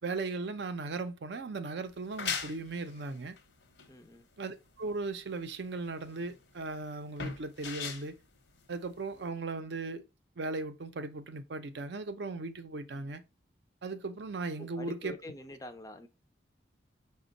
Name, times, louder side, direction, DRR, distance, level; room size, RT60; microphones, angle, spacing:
voice 1, 0.0-3.4 4.4-8.2 8.7-10.0 10.4-13.2 13.8-15.1, right 3 dB, 75° right, 0.5 m, -37 dB
sound 1, 1.9-9.3, left 6 dB, 80° left, 0.8 m, -41 dB
voice 2, 3.9-4.3 14.6-16.1, left 2 dB, 20° left, 0.3 m, -46 dB
5.1 x 2.2 x 3.8 m
head